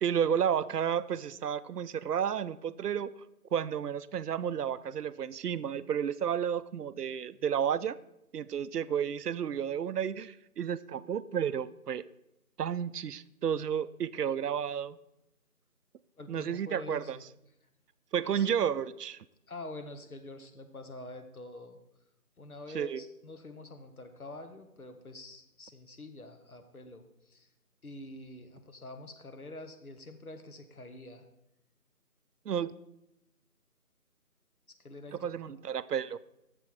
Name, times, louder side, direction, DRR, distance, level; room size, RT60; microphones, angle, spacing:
voice 1, 0.0-3.1 3.5-8.0 8.3-12.1 12.6-15.0 16.3-17.2 18.1-19.3 22.7-23.0 32.5-32.7 35.1-36.2, right 8 dB, 80° right, 16 dB, 0.5 m, -32 dB
voice 2, 16.2-17.2 18.2-18.5 19.5-21.8 22.4-27.5 27.8-31.3 34.8-35.5, left 2 dB, 65° left, 7 dB, 1.2 m, -46 dB
7.5 x 6.9 x 4.6 m, 0.86 s
figure-of-eight pair, 180°, 46 cm